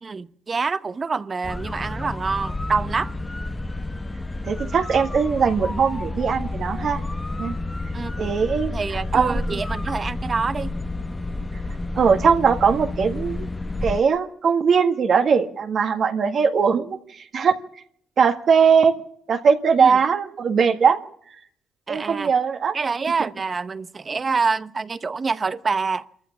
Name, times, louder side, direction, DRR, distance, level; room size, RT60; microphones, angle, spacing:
voice 1, 0.0-3.1 7.9-8.3 8.7-10.7 19.8-20.0 21.9-22.3 22.7-26.1, right 4 dB, 35° right, 1.0 m, -26 dB
sound 1, 1.4-14.0, left 2 dB, 15° left, 0.9 m, -30 dB
voice 2, 4.5-7.0 7.3-7.5 8.2-8.7 9.1-9.6 12.0-13.5 13.8-17.0 17.3-17.5 18.2-18.9 19.3-21.0 21.9-22.7 23.2-23.3, right 6 dB, 55° right, 1.8 m, -20 dB
26.0 x 14.5 x 7.2 m
cardioid pair, 90°, 0 cm